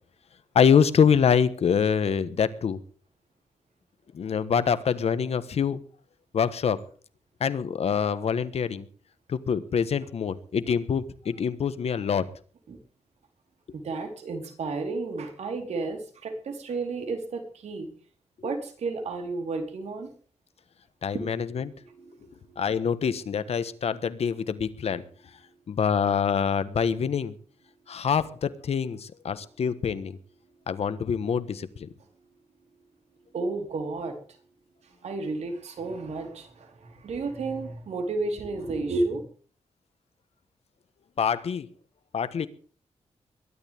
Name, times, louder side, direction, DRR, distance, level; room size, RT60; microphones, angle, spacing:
voice 1, 0.5-2.8 4.1-5.8 6.3-6.8 7.4-8.9 9.3-12.3 21.0-21.7 22.6-25.0 25.7-27.3 27.9-30.2 30.7-31.9 41.2-41.7 42.1-42.5, left 7 dB, 65° left, 13 dB, 1.4 m, -25 dB
voice 2, 13.8-17.9 18.4-20.1 21.1-21.3 22.0-22.1 33.3-34.1 35.0-36.7 37.0-39.2, right 3 dB, 75° right, 5 dB, 4.3 m, -32 dB
22.5 x 12.0 x 3.6 m, 0.42 s
wide cardioid pair, 120°, 11 cm